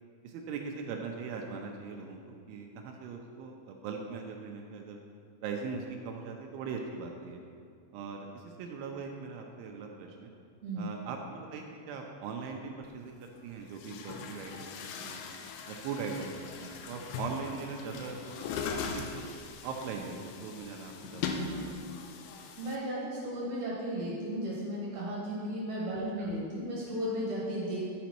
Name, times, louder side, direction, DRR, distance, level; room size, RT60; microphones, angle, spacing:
voice 1, 0.2-5.0 5.4-7.4 7.9-10.3 10.8-13.2 13.4-14.7 15.0-15.2 15.7-19.2 19.6-21.9 26.2-26.3, right 5 dB, 85° right, 2 dB, 2.9 m, -40 dB
voice 2, 10.6-10.9 22.3-27.8, equal, 65° right, -7 dB, 1.8 m, -35 dB
Chatter / Gurgling / Tap, 12.8-12.9 13.7-22.8, left 5 dB, 85° left, 2.8 m, -40 dB
12.0 x 5.1 x 4.4 m, 2.3 s
omnidirectional pair, 5.7 m